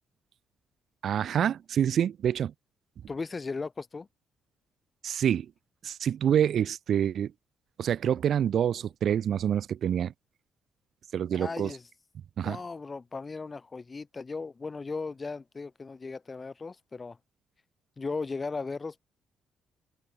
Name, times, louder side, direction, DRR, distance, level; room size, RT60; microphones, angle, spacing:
voice 1, 1.0-2.5 5.0-5.5 5.8-7.3 7.8-10.1 11.1-11.7 12.4-12.6, right 9 dB, 65° right, 0.5 m, -27 dB
voice 2, 3.1-4.1 11.3-11.8 12.4-17.2 18.0-19.0, left 4 dB, 30° left, 3.0 m, -37 dB
cardioid pair, 90°, 0 cm